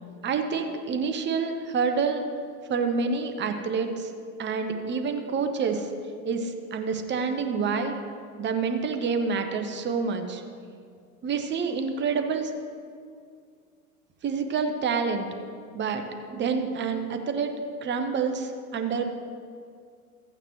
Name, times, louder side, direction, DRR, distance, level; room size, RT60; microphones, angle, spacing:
voice 1, 0.2-2.3 2.7-4.1 4.4-5.9 6.2-8.0 8.4-10.4 11.2-12.5 14.2-15.3 15.7-16.0 16.3-17.5 17.8-19.1, right 5 dB, 25° right, 6 dB, 1.0 m, -27 dB
14.5 x 8.8 x 3.1 m, 2.2 s
hypercardioid pair, 90°, 44 cm